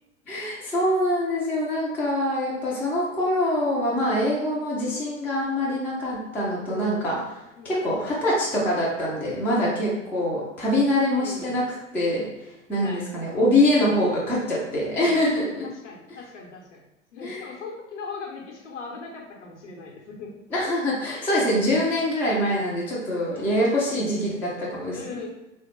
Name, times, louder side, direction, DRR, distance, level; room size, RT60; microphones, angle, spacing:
voice 1, 0.3-11.6 11.9-15.7 17.2-17.4 20.5-25.2, left 1 dB, 5° left, -5 dB, 0.3 m, -24 dB
voice 2, 7.6-7.9 11.2-11.6 12.8-13.0 14.9-15.2 15.6-16.8 17.1-20.3 23.3-24.0 24.9-25.3, left 4 dB, 65° left, 0 dB, 0.9 m, -40 dB
3.4 x 2.1 x 3.0 m, 1.0 s
figure-of-eight pair, 85°, 38 cm